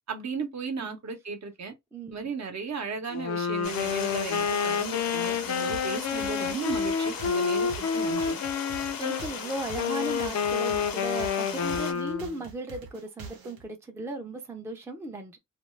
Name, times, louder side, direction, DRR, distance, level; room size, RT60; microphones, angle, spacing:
voice 1, 0.1-1.7 2.1-8.4, right 5 dB, 50° right, 0.8 m, -35 dB
voice 2, 1.9-2.3 9.0-15.4, right 2 dB, 10° right, 0.4 m, -36 dB
Wind instrument woodwind instrument, 3.1-9.3 9.8-12.4, left 6 dB, 55° left, 0.4 m, -29 dB
Stream, 3.6-11.9, left 7 dB, 80° left, 0.7 m, -37 dB
sound 1, 5.7-13.6, right 4 dB, 90° right, 0.9 m, -45 dB
2.5 x 2.3 x 3.1 m
wide cardioid pair, 140°, 34 cm